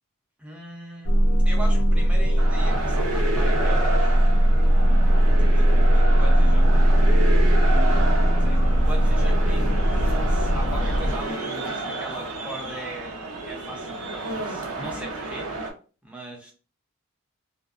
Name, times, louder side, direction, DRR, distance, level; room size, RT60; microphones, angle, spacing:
voice 1, 0.4-1.1 1.4-4.2 5.5-6.9 8.3-15.5 16.0-16.5, right 1 dB, 5° right, -1 dB, 0.5 m, -39 dB
sound 1, 1.0-11.4, equal, 75° left, 0.5 m, -19 dB
sound 2, 2.4-15.7, right 2 dB, 80° right, 0.6 m, -31 dB
2.5 x 2.1 x 2.4 m, 0.36 s
head